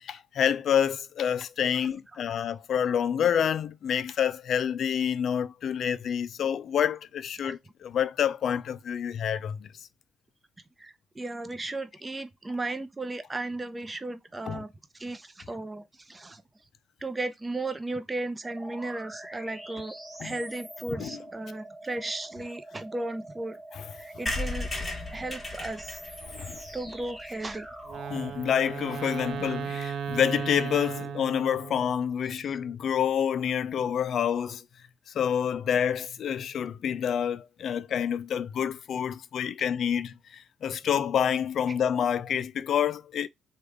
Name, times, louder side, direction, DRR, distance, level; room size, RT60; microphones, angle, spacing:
voice 1, 0.0-9.7 14.5-14.6 20.2-20.4 21.0-21.2 23.7-23.8 26.3-26.6 28.1-34.6 35.1-43.3, left 8 dB, 65° left, 0.3 m, -28 dB
voice 2, 10.8-14.7 14.9-16.4 17.0-19.9 20.2-23.6 23.9-24.7 25.1-26.0 26.7-27.7 28.1-28.2 32.4-32.6, right 2 dB, 20° right, 0.6 m, -35 dB
sound 1, 18.4-28.3, right 1 dB, 5° left, 1.0 m, -44 dB
sound 2, 24.3-27.9 28.4-28.5 28.7-28.8 29.0-29.1 29.3-29.5, left 2 dB, 20° left, 1.5 m, -36 dB
Wind instrument woodwind instrument, 27.9-32.0, right 7 dB, 65° right, 0.6 m, -35 dB
3.3 x 2.4 x 3.2 m
cardioid pair, 90°, 0 cm